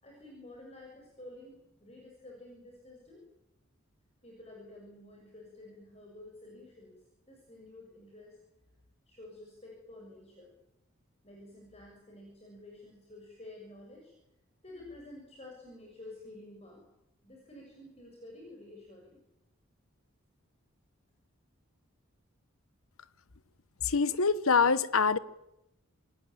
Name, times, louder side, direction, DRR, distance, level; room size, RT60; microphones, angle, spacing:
voice 1, 0.0-3.2 4.2-7.0 7.3-8.4 9.1-10.5 11.2-14.1 14.6-16.8 17.2-19.2, left 1 dB, 30° left, -1 dB, 6.6 m, -50 dB
voice 2, 23.8-25.2, left 5 dB, 80° left, 16 dB, 1.2 m, -25 dB
28.5 x 19.0 x 9.3 m, 0.89 s
head